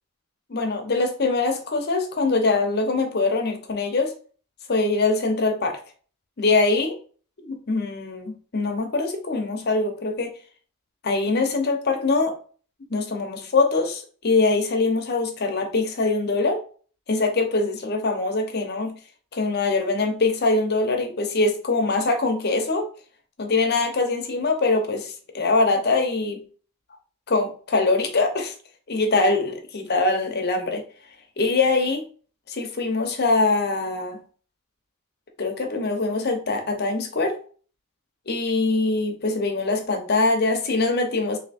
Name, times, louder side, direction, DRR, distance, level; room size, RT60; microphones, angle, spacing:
voice 1, 0.5-4.1 4.7-5.8 6.4-7.0 7.4-10.3 11.0-12.3 12.9-16.6 17.1-18.9 19.3-22.9 23.4-26.4 27.3-28.5 28.9-30.8 31.4-32.0 32.5-34.2 35.4-37.3 38.3-41.4, left 3 dB, 45° left, 4 dB, 0.7 m, -23 dB
3.3 x 2.7 x 4.1 m, 0.42 s
head